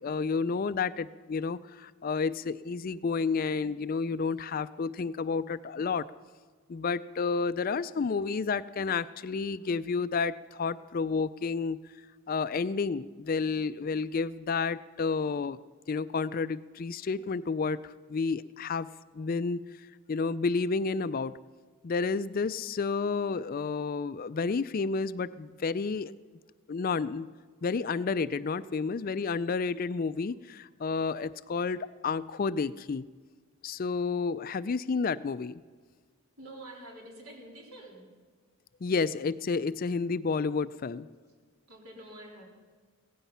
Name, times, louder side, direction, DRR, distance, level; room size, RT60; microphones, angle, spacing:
voice 1, 0.0-6.0 6.7-11.8 12.3-15.6 15.9-18.9 19.1-19.6 20.1-21.3 21.8-26.1 26.7-27.3 27.6-33.1 33.6-35.6 38.8-41.1, left 4 dB, 40° left, 15 dB, 0.4 m, -30 dB
voice 2, 36.4-38.1 41.7-42.5, right 1 dB, 80° right, -1 dB, 3.8 m, -47 dB
16.5 x 15.0 x 5.6 m, 1.5 s
head